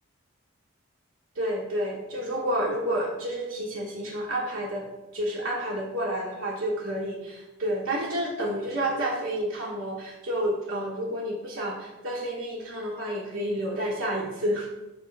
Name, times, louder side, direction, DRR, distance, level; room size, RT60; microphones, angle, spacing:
voice 1, 1.3-4.9 5.1-14.7, right 1 dB, 75° right, -4 dB, 1.2 m, -30 dB
6.3 x 3.0 x 5.4 m, 1.0 s
head